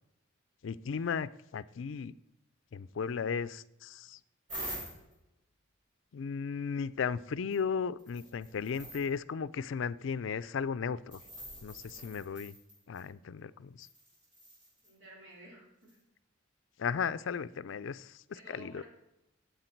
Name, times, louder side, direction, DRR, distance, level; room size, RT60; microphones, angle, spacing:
voice 1, 0.6-2.1 2.7-4.2 6.1-11.2 11.6-12.6 12.9-13.9 16.8-18.8, left 6 dB, 70° left, 17 dB, 0.4 m, -35 dB
sound 1, 4.5-5.1 7.5-7.6 8.0-9.1 11.1-13.0 13.8-14.9 15.9-16.0, right 1 dB, 40° right, 4.8 m, -45 dB
voice 2, 14.8-15.9 18.3-18.8, right 2 dB, 75° right, -4 dB, 4.7 m, -52 dB
12.0 x 8.5 x 4.5 m, 0.90 s
head